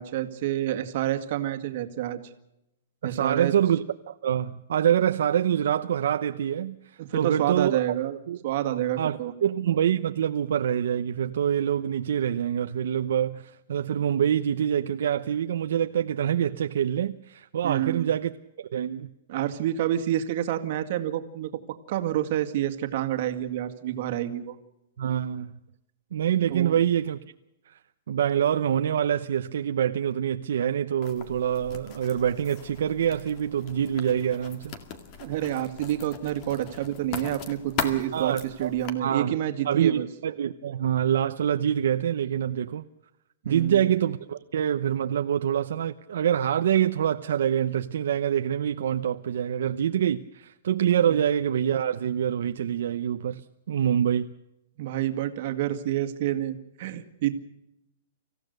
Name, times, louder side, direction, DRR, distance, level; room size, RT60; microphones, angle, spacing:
voice 1, 0.0-2.2 3.0-3.5 7.0-9.3 17.6-18.1 19.3-24.6 26.5-26.8 35.2-40.1 43.4-43.9 51.1-51.2 54.8-57.3, right 12 dB, 45° right, 1.9 m, -28 dB
voice 2, 3.0-7.8 8.3-8.4 8.7-18.3 18.6-19.1 25.0-25.5 26.1-27.2 27.7-27.8 28.1-34.8 38.1-38.7 39.0-39.3 39.6-42.8 43.4-54.3, right 9 dB, 70° right, 0.8 m, -25 dB
Writing, 31.0-38.9, left 6 dB, 30° left, 2.0 m, -39 dB
26.0 x 15.5 x 6.7 m
hypercardioid pair, 170°, 0 cm